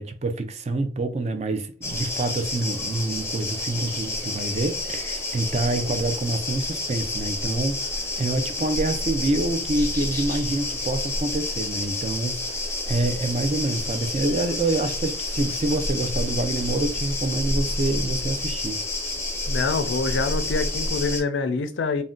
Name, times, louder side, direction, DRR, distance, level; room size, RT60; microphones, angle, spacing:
voice 1, 0.0-18.8, right 2 dB, 35° right, 0.4 m, -27 dB
sound 1, 1.8-21.2, left 2 dB, 15° left, 0.5 m, -29 dB
voice 2, 19.5-22.0, left 4 dB, 70° left, 0.4 m, -25 dB
2.5 x 2.1 x 3.6 m
head